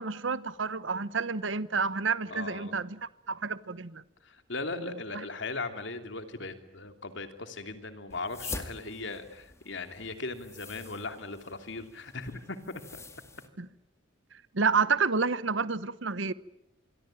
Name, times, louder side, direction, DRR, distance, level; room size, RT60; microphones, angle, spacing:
voice 1, 0.0-4.0 13.6-13.7 14.5-16.3, right 5 dB, 75° right, 16 dB, 1.0 m, -29 dB
voice 2, 2.3-2.8 4.2-13.0, left 3 dB, 65° left, 8 dB, 2.9 m, -38 dB
sound 1, 8.1-13.5, left 3 dB, 15° left, 2.2 m, -45 dB
27.0 x 23.5 x 9.0 m, 0.80 s
head